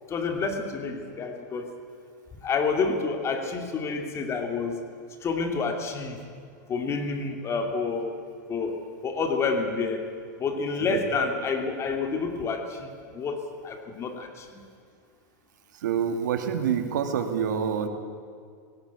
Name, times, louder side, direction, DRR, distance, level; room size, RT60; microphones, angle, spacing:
voice 1, 0.1-1.7 2.4-4.8 5.2-6.2 6.7-8.1 8.5-8.7 9.0-10.0 10.4-13.4 13.6-14.6, left 4 dB, 30° left, 4 dB, 2.6 m, -29 dB
voice 2, 15.8-17.9, right 7 dB, 80° right, 6 dB, 2.3 m, -26 dB
18.5 x 17.0 x 8.4 m, 2.2 s
hypercardioid pair, 125°, 10 cm